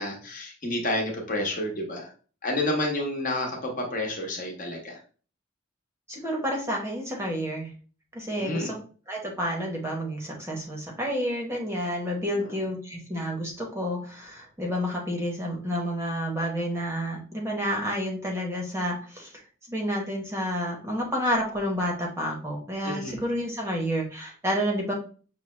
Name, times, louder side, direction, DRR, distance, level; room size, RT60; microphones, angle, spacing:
voice 1, 0.0-2.1 2.4-5.0 8.4-8.7 12.3-12.6 22.8-23.2, left 1 dB, 40° left, 0 dB, 1.1 m, -30 dB
voice 2, 6.1-7.7 8.1-8.8 9.1-19.3 19.7-24.9, equal, 15° right, -1 dB, 0.9 m, -30 dB
5.9 x 2.2 x 3.1 m, 0.39 s
head